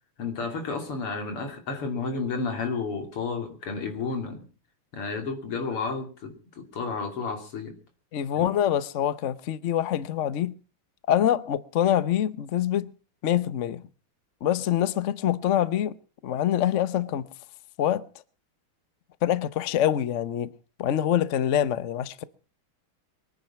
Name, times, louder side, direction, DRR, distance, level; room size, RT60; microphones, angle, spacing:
voice 1, 0.2-4.4 4.9-7.8 8.4-8.5, left 4 dB, 90° left, 3.8 m, -31 dB
voice 2, 8.1-10.5 11.1-12.9 13.2-13.8 14.4-16.0 16.2-17.3 17.8-18.1 19.2-20.5 20.8-22.2, left 11 dB, 55° left, 0.8 m, -25 dB
23.5 x 9.6 x 5.9 m
omnidirectional pair, 2.4 m